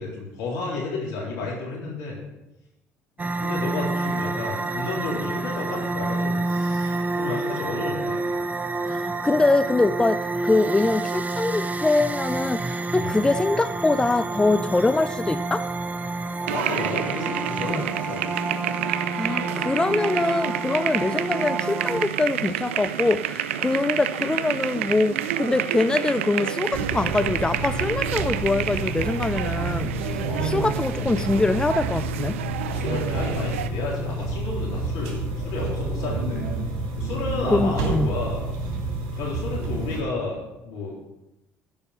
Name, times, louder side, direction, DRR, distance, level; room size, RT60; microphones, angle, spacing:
voice 1, 0.0-2.2 3.2-8.2 13.0-13.2 16.5-18.3 30.3-30.5 32.6-36.5 37.0-38.5 39.1-40.9, left 3 dB, 75° left, -3 dB, 3.7 m, -32 dB
sound 1, 3.2-22.1, right 2 dB, 25° right, 0.8 m, -29 dB
voice 2, 8.8-15.7 17.7-17.8 19.2-32.4 37.5-38.1, left 2 dB, 10° left, 12 dB, 0.4 m, -23 dB
sound 2, 16.5-33.7, right 10 dB, 90° right, 0.4 m, -29 dB
sound 3, 26.7-40.0, right 2 dB, 70° right, 2.4 m, -29 dB
12.5 x 5.5 x 5.8 m, 0.95 s
hypercardioid pair, 65°, 7 cm